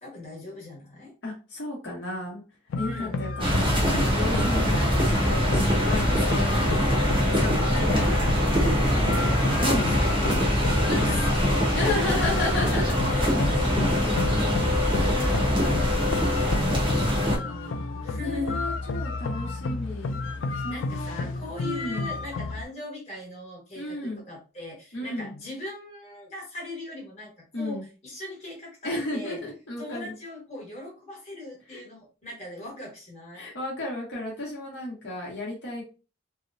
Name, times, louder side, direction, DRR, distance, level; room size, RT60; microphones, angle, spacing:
voice 1, 0.0-1.1 2.8-3.2 6.5-6.8 9.1-9.4 9.7-11.5 11.7-12.4 13.1-14.2 14.7-15.7 16.3-18.6 20.5-29.4 29.8-33.5, left 2 dB, 35° left, -4 dB, 1.2 m, -39 dB
voice 2, 1.2-2.4 2.8-9.3 9.6-10.0 11.7-14.7 16.1-20.2 20.6-22.1 23.8-24.2 24.9-25.3 27.5-27.8 28.8-30.1 31.7-31.8 33.3-35.8, left 2 dB, 60° left, -5 dB, 0.9 m, -34 dB
sound 1, 2.7-22.6, left 3 dB, 85° left, 0.3 m, -32 dB
sound 2, 3.4-17.4, equal, 25° right, 0.7 m, -23 dB
2.8 x 2.0 x 2.5 m, 0.33 s
head